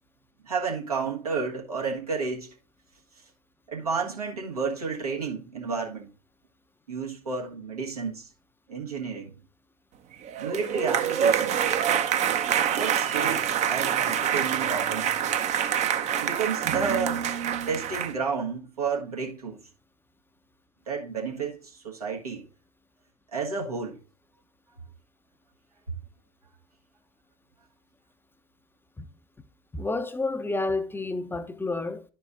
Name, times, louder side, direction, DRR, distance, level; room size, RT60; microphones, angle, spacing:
voice 1, 0.4-2.5 3.7-6.1 6.9-8.3 8.7-9.3 10.4-11.6 12.7-15.1 16.2-17.3 17.7-19.6 20.9-22.5 23.3-24.0, right 5 dB, 85° right, 1.4 m, -31 dB
sound 1, 10.2-18.1, right 9 dB, 40° right, 0.7 m, -26 dB
voice 2, 29.7-32.0, left 3 dB, 10° left, 0.6 m, -30 dB
11.5 x 4.6 x 2.5 m
figure-of-eight pair, 70°, 19 cm